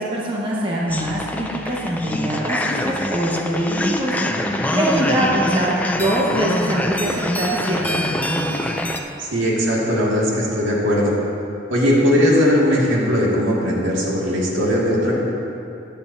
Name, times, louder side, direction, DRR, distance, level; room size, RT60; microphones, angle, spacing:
voice 1, 0.0-8.7, right 1 dB, 25° right, -5 dB, 1.2 m, -23 dB
sound 1, 0.9-9.0, left 1 dB, 10° left, 0.4 m, -24 dB
voice 2, 9.2-11.1 11.7-15.2, equal, 85° right, -4 dB, 2.1 m, -19 dB
15.0 x 10.5 x 2.7 m, 2.7 s
head